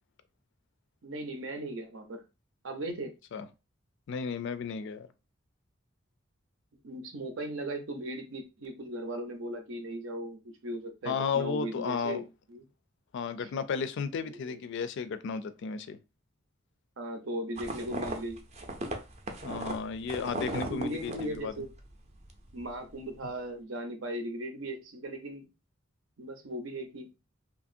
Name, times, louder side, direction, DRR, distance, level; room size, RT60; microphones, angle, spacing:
voice 1, 1.0-2.2 2.6-3.1 6.8-12.6 13.4-13.5 14.2-14.6 17.0-18.4 20.4-21.7 22.5-25.5 26.2-27.1, right 1 dB, 70° right, 0.7 m, -38 dB
voice 2, 4.1-5.1 11.1-12.2 13.1-16.0 19.4-21.5, left 5 dB, 60° left, 0.3 m, -33 dB
sound 1, 17.6-21.9 22.2-22.7, right 1 dB, 35° right, 0.5 m, -37 dB
2.9 x 2.5 x 2.5 m
head